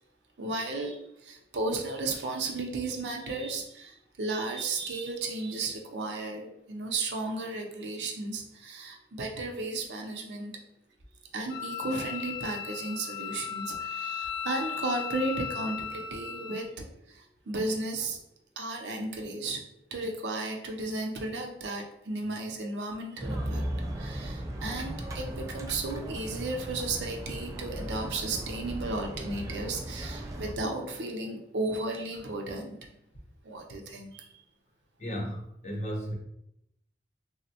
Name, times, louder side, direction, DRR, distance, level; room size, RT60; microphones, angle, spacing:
voice 1, 0.4-10.5 11.3-18.2 18.6-19.6 19.9-32.9 33.4-34.3, right 2 dB, 80° right, 2 dB, 0.5 m, -34 dB
Wind instrument woodwind instrument, 11.5-16.6, left 8 dB, 85° left, 0.8 m, -36 dB
sound 1, 23.2-30.5, right 1 dB, 20° right, 0.3 m, -37 dB
voice 2, 35.0-36.1, equal, 40° left, 0 dB, 0.6 m, -34 dB
3.3 x 2.0 x 2.7 m, 0.78 s
head